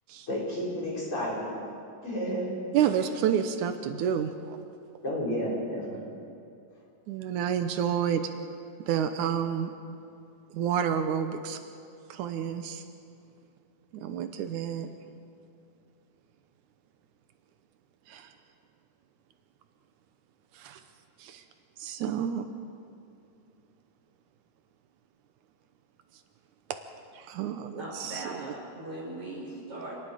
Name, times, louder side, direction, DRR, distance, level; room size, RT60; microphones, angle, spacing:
voice 1, 0.3-1.6 2.0-2.5 5.0-6.0, equal, 45° left, -6 dB, 6.2 m, -31 dB
voice 2, 2.7-4.6 7.1-8.2 8.9-9.7 10.5-11.6 12.1-12.8 13.9-14.9 18.1-18.3 20.5-20.8 21.2-21.4 21.8-22.5 27.1-28.5, right 8 dB, 85° right, 7 dB, 2.4 m, -29 dB
voice 3, 27.8-30.0, right 1 dB, 50° right, -4 dB, 6.6 m, -39 dB
27.0 x 19.5 x 5.0 m, 2.5 s
omnidirectional pair, 3.4 m